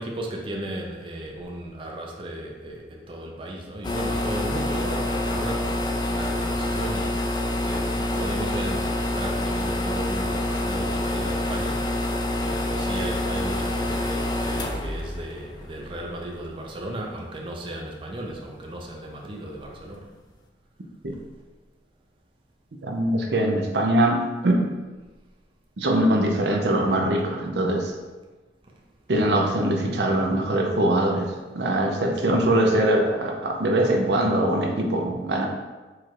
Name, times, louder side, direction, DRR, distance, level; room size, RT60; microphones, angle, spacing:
voice 1, 0.0-12.0 12.4-20.1, right 1 dB, 30° right, -1 dB, 0.5 m, -35 dB
sound 1, 3.8-16.2, left 1 dB, 25° left, 0.4 m, -27 dB
voice 2, 22.8-24.7 25.8-27.9 29.1-35.5, right 1 dB, 75° right, 2 dB, 0.6 m, -22 dB
4.7 x 2.4 x 4.5 m, 1.2 s
head